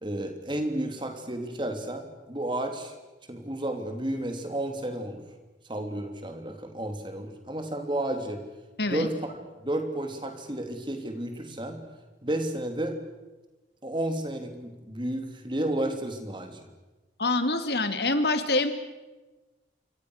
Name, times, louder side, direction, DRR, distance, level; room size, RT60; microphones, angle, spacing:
voice 1, 0.0-2.9 3.3-5.2 5.7-8.4 8.9-11.8 12.2-13.0 13.8-16.6, right 1 dB, 25° right, 5 dB, 3.2 m, -32 dB
voice 2, 17.2-18.7, left 2 dB, 70° left, 9 dB, 2.3 m, -25 dB
28.0 x 25.5 x 6.5 m, 1.1 s
head